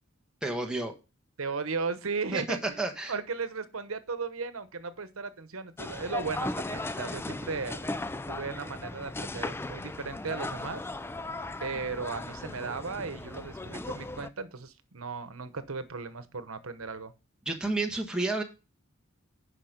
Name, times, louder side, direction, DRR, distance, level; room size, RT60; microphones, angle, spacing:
voice 1, 0.4-0.9 2.3-3.1 17.4-18.4, right 2 dB, 5° right, 1.3 m, -31 dB
voice 2, 1.4-2.8 3.1-7.8 8.3-10.8 11.6-17.1, right 4 dB, 85° right, 1.0 m, -36 dB
sound 1, 5.8-14.3, left 2 dB, 10° left, 0.3 m, -37 dB
10.5 x 5.0 x 5.1 m
head